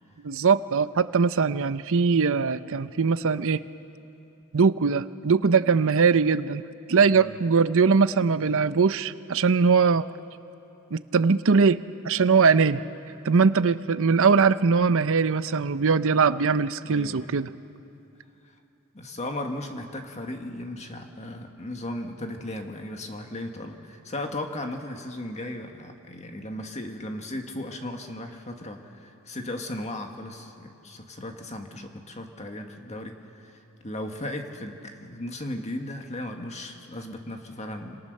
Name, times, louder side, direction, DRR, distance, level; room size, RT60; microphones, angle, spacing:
voice 1, 0.2-3.6 4.5-10.1 10.9-12.8 13.2-17.5, right 5 dB, 65° right, 13 dB, 0.7 m, -21 dB
voice 2, 16.8-17.4 18.9-38.0, left 1 dB, 30° left, 4 dB, 1.8 m, -36 dB
28.0 x 27.0 x 6.6 m, 2.8 s
head